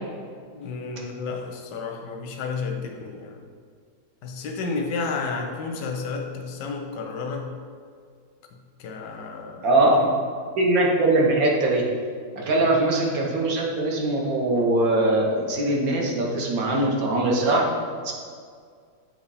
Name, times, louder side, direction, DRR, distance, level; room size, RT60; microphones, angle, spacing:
voice 1, 0.5-3.4 4.2-7.6 8.8-9.7 10.0-10.1 12.6-12.7, left 4 dB, 85° left, 3 dB, 1.3 m, -31 dB
voice 2, 9.6-10.1 10.6-11.9 12.4-17.6 18.0-18.1, right 2 dB, 60° right, -1 dB, 1.2 m, -21 dB
7.9 x 3.0 x 4.1 m, 2.1 s
omnidirectional pair, 1.8 m